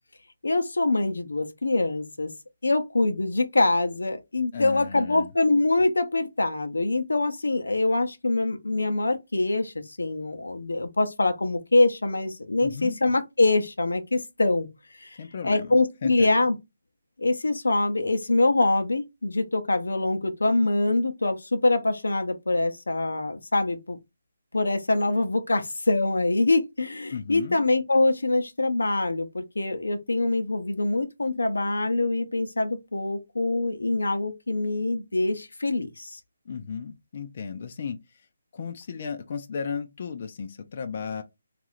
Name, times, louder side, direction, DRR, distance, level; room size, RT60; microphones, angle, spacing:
voice 1, 0.4-2.3 2.6-14.7 15.0-15.2 15.4-16.6 17.2-24.0 24.5-36.2, left 2 dB, 90° left, 0.6 m, -24 dB
voice 2, 4.5-5.3 12.6-12.9 15.2-15.7 16.0-16.3 27.1-27.6 36.5-38.0 38.5-41.2, left 6 dB, 45° left, 0.5 m, -34 dB
3.0 x 2.4 x 3.0 m
figure-of-eight pair, 155°, 0 cm